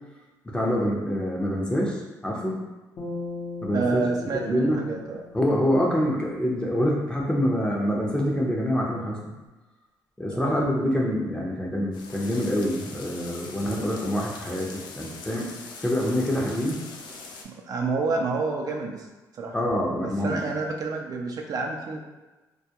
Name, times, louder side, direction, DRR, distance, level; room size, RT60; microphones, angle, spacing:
voice 1, 0.4-2.0 2.2-2.6 3.6-4.8 5.3-9.3 10.2-15.5 15.8-16.8 19.5-20.4, equal, 10° left, -2 dB, 0.5 m, -26 dB
sound 1, 3.0-6.3, left 3 dB, 55° left, 0.7 m, -39 dB
voice 2, 3.7-5.2 10.3-10.5 17.4-19.1 19.3-19.6 20.0-22.0, right 4 dB, 55° right, 1 dB, 0.3 m, -28 dB
sound 2, 11.9-17.4, left 4 dB, 80° left, 0.4 m, -42 dB
2.2 x 2.1 x 2.8 m, 1.2 s
cardioid pair, 85°, 8 cm